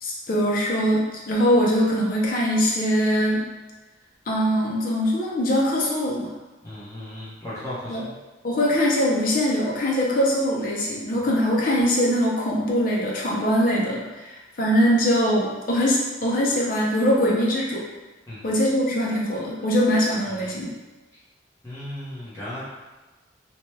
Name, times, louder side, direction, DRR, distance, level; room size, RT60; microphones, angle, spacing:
voice 1, 0.0-3.5 4.3-6.3 7.9-8.0 8.4-17.8 18.4-20.7, equal, 45° left, -3 dB, 0.5 m, -22 dB
voice 2, 6.6-8.1 18.3-18.5 20.3-20.6 21.6-22.6, left 1 dB, 15° left, -12 dB, 0.8 m, -36 dB
2.9 x 2.2 x 3.1 m, 1.2 s
head